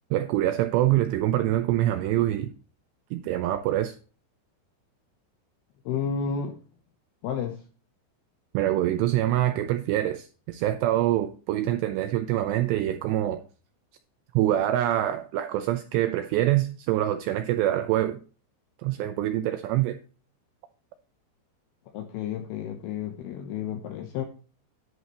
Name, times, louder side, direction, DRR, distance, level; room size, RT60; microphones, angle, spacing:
voice 1, 0.1-2.5 3.1-4.0 8.5-13.4 14.3-18.2 18.8-20.0, right 13 dB, 85° right, 8 dB, 2.5 m, -25 dB
voice 2, 5.9-6.6 7.2-7.6 21.9-24.2, left 7 dB, 80° left, 5 dB, 2.3 m, -31 dB
11.0 x 9.0 x 2.9 m, 0.36 s
omnidirectional pair, 5.5 m